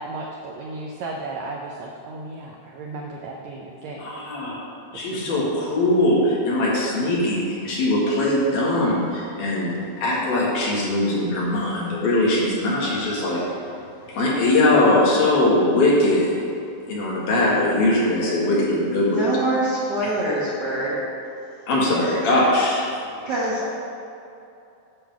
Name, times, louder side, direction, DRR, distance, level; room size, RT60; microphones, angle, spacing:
voice 1, 0.0-4.1 4.9-5.6, right 2 dB, 90° right, -1 dB, 1.5 m, -35 dB
voice 2, 4.0-4.6 4.9-13.4 14.1-16.3 16.9-19.2 21.7-22.8, left 1 dB, 90° left, -6 dB, 3.7 m, -21 dB
voice 3, 19.1-20.9 23.2-23.7, right 1 dB, 55° right, -9 dB, 1.2 m, -24 dB
9.8 x 3.9 x 7.0 m, 2.7 s
omnidirectional pair, 4.1 m